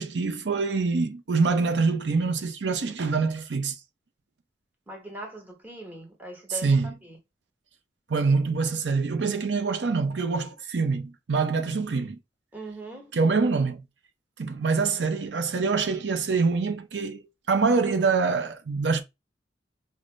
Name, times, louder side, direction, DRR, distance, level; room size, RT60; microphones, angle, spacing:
voice 1, 0.0-3.8 6.5-6.9 8.1-12.2 13.1-13.8 14.4-17.2 17.5-19.0, right 4 dB, 90° right, 0.6 m, -25 dB
voice 2, 4.9-6.8 12.5-13.1, right 1 dB, 10° right, 1.0 m, -40 dB
5.1 x 2.0 x 3.1 m
head